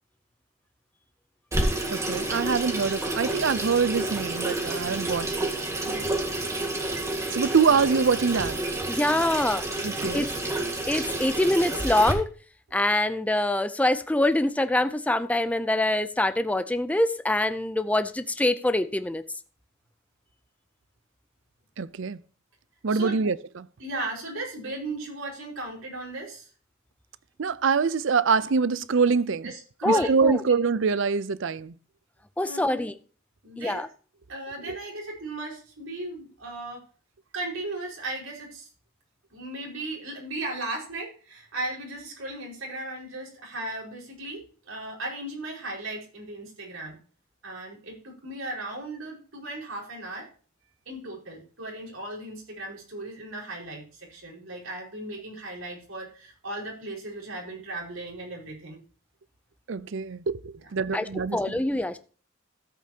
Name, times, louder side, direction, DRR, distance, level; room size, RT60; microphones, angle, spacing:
Water tap faucet / Sink (filling or washing), 1.5-12.1, right 2 dB, 15° right, 1.8 m, -29 dB
voice 1, 1.9-5.5 5.9-6.0 7.3-8.6 9.8-10.3 21.8-22.2 22.8-23.7 27.4-29.5 29.9-31.7 34.7-34.8 59.7-61.6, right 5 dB, 65° right, 0.5 m, -25 dB
voice 2, 8.9-9.6 10.1-10.3 10.9-12.3 12.7-19.2 29.8-30.4 32.4-32.9 33.6-33.9 60.9-62.0, left 1 dB, 5° left, 0.5 m, -24 dB
voice 3, 22.9-23.3 23.8-26.5 29.4-30.2 32.4-32.8 33.4-33.8 34.3-36.8 37.3-38.7 39.3-47.0 47.4-50.3 50.8-58.8, right 2 dB, 80° right, 5.1 m, -36 dB
13.5 x 8.5 x 2.9 m
head